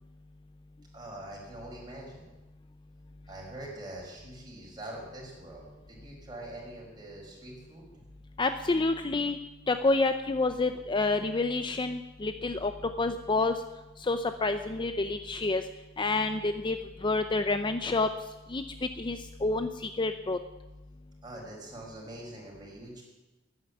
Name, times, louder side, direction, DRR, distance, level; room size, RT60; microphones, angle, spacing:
voice 1, 0.9-2.3 3.3-8.0 21.2-23.0, right 1 dB, 20° right, -2 dB, 5.5 m, -44 dB
voice 2, 8.4-9.4 9.7-12.7 13.0-13.5 14.0-15.6 16.0-18.1 18.5-18.6 19.0-20.4, left 3 dB, 25° left, 8 dB, 0.5 m, -28 dB
13.5 x 9.5 x 9.6 m, 1.1 s
head